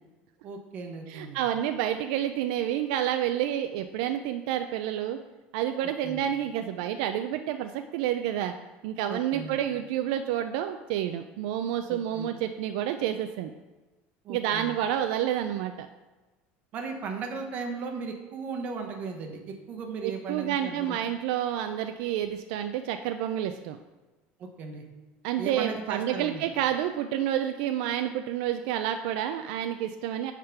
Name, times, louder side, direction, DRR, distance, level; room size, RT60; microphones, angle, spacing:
voice 1, 0.4-1.4 6.0-6.2 9.1-9.6 11.9-12.3 14.2-14.7 16.7-21.0 24.4-24.8 25.4-26.5, right 4 dB, 35° right, 3 dB, 1.0 m, -36 dB
voice 2, 1.1-5.2 5.5-8.5 8.8-13.5 14.3-15.9 20.0-23.8 25.2-30.3, right 11 dB, 70° right, 7 dB, 0.4 m, -29 dB
8.6 x 3.7 x 5.8 m, 1.2 s
cardioid pair, 180°, 5 cm